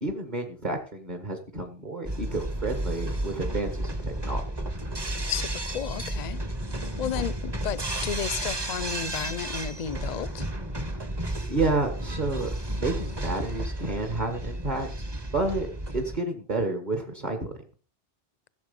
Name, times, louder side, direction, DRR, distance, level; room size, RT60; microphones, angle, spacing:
voice 1, 0.0-4.4 11.5-15.1 15.3-15.7 15.9-17.5, right 2 dB, 40° right, 1.8 m, -30 dB
sound 1, 2.1-16.2, right 1 dB, 20° right, 1.2 m, -32 dB
voice 2, 5.3-6.4 7.0-10.5, left 9 dB, 45° left, 0.7 m, -33 dB
16.5 x 7.5 x 5.3 m
omnidirectional pair, 1.2 m